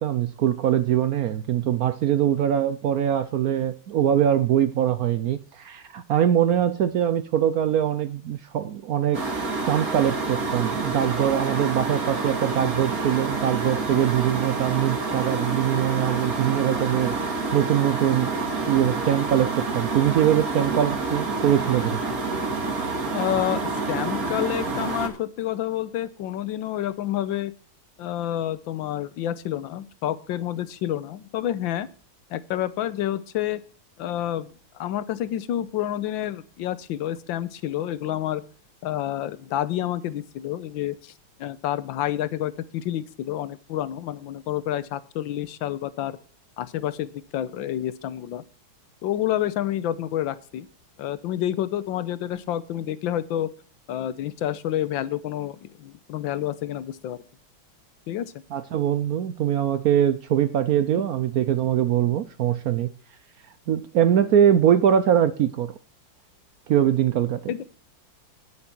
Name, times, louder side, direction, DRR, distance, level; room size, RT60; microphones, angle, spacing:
voice 1, 0.0-9.2 9.6-18.3 18.7-22.0 58.5-62.9 63.7-65.7 66.7-67.5, right 10 dB, 75° right, 0.8 m, -22 dB
sound 1, 9.1-25.1, right 3 dB, 45° right, 2.2 m, -28 dB
voice 2, 23.1-27.5 28.0-31.9 32.3-33.6 34.0-34.5 34.7-38.4 38.8-41.1 41.4-46.2 46.6-48.4 49.0-50.7 51.0-53.5 53.9-57.2 58.1-58.3 67.5-67.6, left 12 dB, 75° left, 1.5 m, -29 dB
9.7 x 9.6 x 4.4 m
omnidirectional pair, 2.2 m